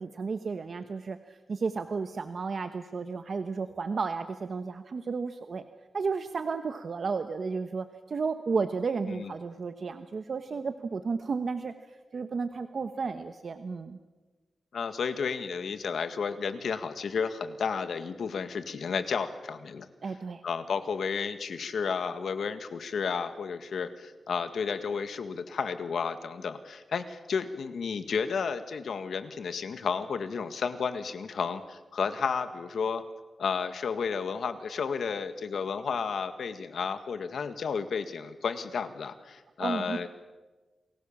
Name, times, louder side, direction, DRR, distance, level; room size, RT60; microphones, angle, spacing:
voice 1, 0.0-5.6 5.9-11.7 12.1-14.0 20.0-20.4 39.6-40.1, right 4 dB, 50° right, 9 dB, 1.1 m, -33 dB
voice 2, 14.7-19.9 20.4-33.0 33.4-40.1, left 6 dB, 80° left, 10 dB, 1.8 m, -32 dB
29.5 x 21.5 x 7.3 m, 1.2 s
wide cardioid pair, 160°, 0 cm